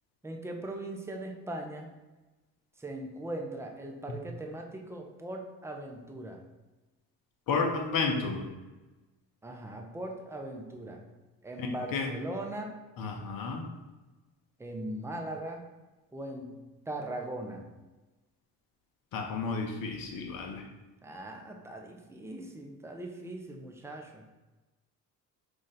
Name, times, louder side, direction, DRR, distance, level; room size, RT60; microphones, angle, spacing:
voice 1, 0.2-1.9 2.8-6.4 9.4-11.0 11.4-12.8 14.6-15.6 16.1-16.6 16.9-17.7 21.0-24.2, right 1 dB, 5° right, 1 dB, 0.5 m, -39 dB
voice 2, 7.5-8.5 11.6-12.1 13.0-13.7 19.1-20.7, left 4 dB, 45° left, 2 dB, 0.8 m, -32 dB
5.1 x 2.5 x 3.9 m, 1.1 s
figure-of-eight pair, 45°, 50 cm